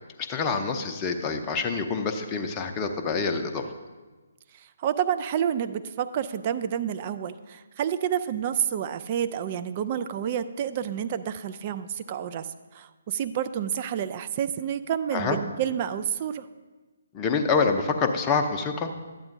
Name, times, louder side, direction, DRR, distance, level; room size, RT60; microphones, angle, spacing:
voice 1, 0.2-3.6 15.1-15.4 17.1-18.9, left 5 dB, 20° left, 5 dB, 0.6 m, -26 dB
voice 2, 4.8-12.5 12.7-16.4, right 9 dB, 35° right, 11 dB, 0.3 m, -29 dB
12.0 x 8.7 x 2.6 m, 1.3 s
figure-of-eight pair, 140°, 0 cm